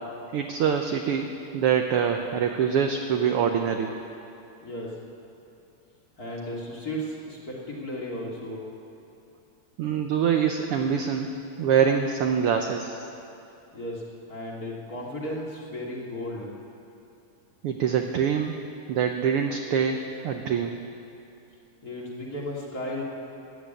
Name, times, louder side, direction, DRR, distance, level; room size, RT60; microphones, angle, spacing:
voice 1, 0.3-3.9 9.8-11.3 11.6-13.0 17.6-18.5 18.9-20.8, right 7 dB, 75° right, 4 dB, 1.3 m, -25 dB
voice 2, 4.6-5.0 6.2-8.6 13.7-14.0 14.3-16.5 21.8-23.0, left 1 dB, 35° left, -4 dB, 2.5 m, -34 dB
15.0 x 10.5 x 8.9 m, 2.7 s
omnidirectional pair, 3.4 m